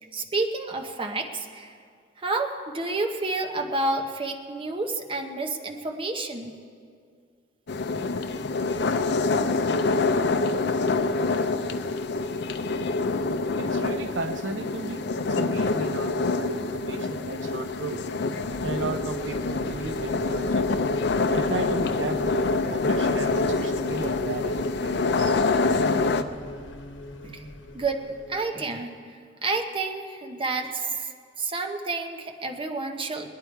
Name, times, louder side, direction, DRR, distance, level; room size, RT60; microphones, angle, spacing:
voice 1, 0.1-1.8 2.2-6.5 20.7-20.8 22.8-23.0 25.1-25.2 26.1-26.3 27.2-31.1 31.4-33.3, right 3 dB, 30° right, 4 dB, 0.9 m, -30 dB
sound 1, 7.7-26.2, left 3 dB, 65° left, 0.5 m, -26 dB
voice 2, 13.6-18.0 18.6-20.9 21.3-25.4, right 3 dB, 90° right, 8 dB, 0.7 m, -35 dB
sound 2, 18.4-28.5, equal, 85° left, 1.0 m, -39 dB
20.5 x 10.0 x 4.6 m, 2.2 s
head